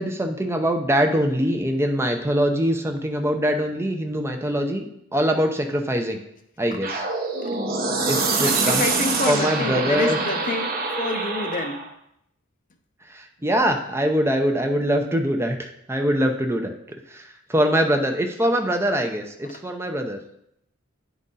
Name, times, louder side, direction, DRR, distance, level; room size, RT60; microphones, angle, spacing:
voice 1, 0.0-4.9 5.1-6.2 6.6-7.0 8.1-8.9 9.2-10.2 13.1-16.7 17.1-20.2, equal, 10° right, 4 dB, 0.6 m, -23 dB
sound 1, 6.8-11.9, right 3 dB, 45° right, 0.9 m, -25 dB
voice 2, 8.4-10.7 11.0-11.8, left 3 dB, 40° left, 5 dB, 0.7 m, -28 dB
9.5 x 4.0 x 3.8 m, 0.77 s
head